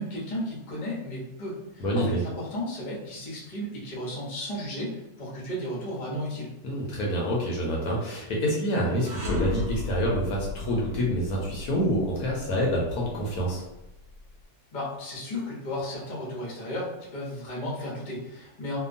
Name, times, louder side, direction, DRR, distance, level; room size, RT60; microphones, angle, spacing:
voice 1, 0.0-6.5 14.7-18.8, left 1 dB, 45° left, -5 dB, 0.6 m, -34 dB
voice 2, 1.8-2.2 6.6-13.6, equal, 70° left, -3 dB, 1.0 m, -27 dB
sound 1, 9.0-14.3, left 4 dB, 55° right, 0.9 m, -36 dB
2.8 x 2.3 x 2.5 m, 0.94 s
omnidirectional pair, 1.8 m